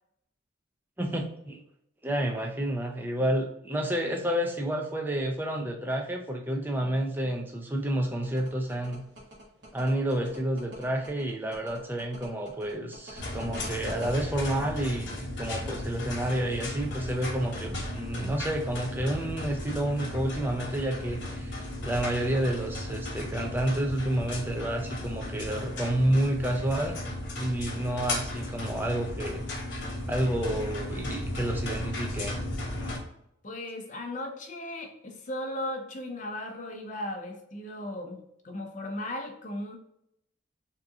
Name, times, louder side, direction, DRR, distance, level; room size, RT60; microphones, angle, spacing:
voice 1, 1.0-1.6 2.0-9.0 9.7-29.4 30.1-32.4, right 1 dB, 10° right, 2 dB, 0.4 m, -30 dB
sound 1, 8.2-14.1, equal, 65° right, 1.0 m, -44 dB
sound 2, 13.2-33.0, left 1 dB, 60° left, 0.9 m, -35 dB
voice 2, 33.4-39.8, left 1 dB, 40° left, 2 dB, 0.6 m, -36 dB
3.6 x 2.7 x 2.3 m, 0.76 s
head